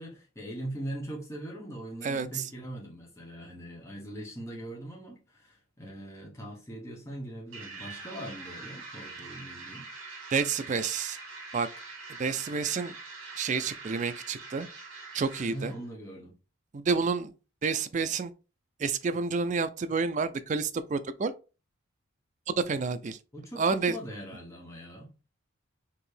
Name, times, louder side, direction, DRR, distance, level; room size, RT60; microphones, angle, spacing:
voice 1, 0.0-9.9 15.4-16.3 23.3-25.1, right 1 dB, 15° left, 1.0 m, -41 dB
voice 2, 2.0-2.4 10.3-11.2 11.5-11.7 12.2-12.9 13.4-14.7 15.1-15.7 16.7-17.3 17.6-18.3 18.8-21.3 22.5-23.2 23.6-24.0, right 5 dB, 35° right, 0.3 m, -29 dB
sound 1, 7.5-15.8, right 3 dB, 70° right, 2.1 m, -44 dB
4.6 x 2.9 x 3.2 m
head